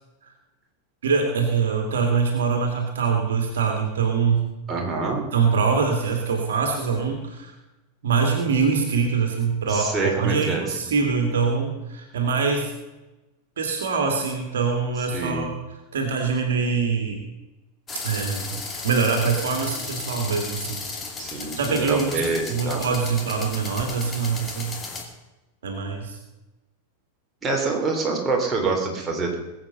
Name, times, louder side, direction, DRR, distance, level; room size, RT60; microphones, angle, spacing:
voice 1, 1.0-4.5 5.3-7.5 8.0-12.7 13.6-15.5 15.9-17.2 18.0-20.8 21.6-22.2 22.5-24.8 25.6-26.2, right 5 dB, 65° right, 3 dB, 2.5 m, -24 dB
voice 2, 4.7-5.2 9.7-10.6 15.1-15.5 21.2-22.8 27.4-29.3, right 3 dB, 15° right, -1 dB, 3.7 m, -26 dB
sound 1, 17.9-25.0, left 4 dB, 20° left, 2.6 m, -35 dB
20.5 x 8.1 x 5.5 m, 1.0 s
figure-of-eight pair, 90°, 0 cm